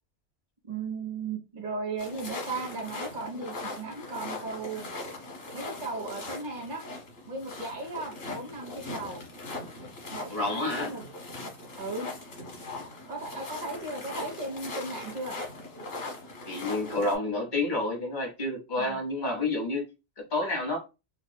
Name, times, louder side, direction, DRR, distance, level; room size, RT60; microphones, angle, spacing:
voice 1, 0.7-4.8 5.5-6.8 7.3-9.2 10.1-11.0 11.7-12.1 13.1-15.4 18.8-19.0, right 3 dB, 45° right, 1.2 m, -36 dB
sound 1, 2.0-17.2, left 2 dB, 90° left, 1.5 m, -40 dB
voice 2, 10.3-10.9 16.5-19.9 20.3-20.8, left 2 dB, 45° left, 1.4 m, -29 dB
4.8 x 2.4 x 2.2 m
omnidirectional pair, 1.2 m